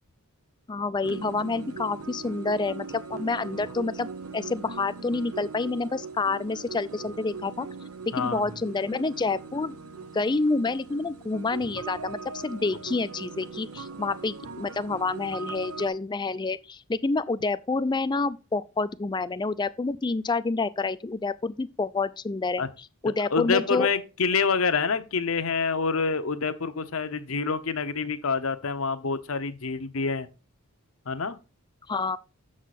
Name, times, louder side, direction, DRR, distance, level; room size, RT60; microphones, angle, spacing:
voice 1, 0.7-4.1 4.3-7.7 8.2-9.8 10.1-23.9 31.9-32.2, left 3 dB, 20° left, 0.4 m, -28 dB
sound 1, 1.0-15.9, right 4 dB, 90° right, 0.8 m, -40 dB
voice 2, 8.1-8.5 22.6-22.7 23.3-30.3 31.1-31.4, left 5 dB, 70° left, 0.8 m, -27 dB
7.2 x 6.3 x 4.1 m
head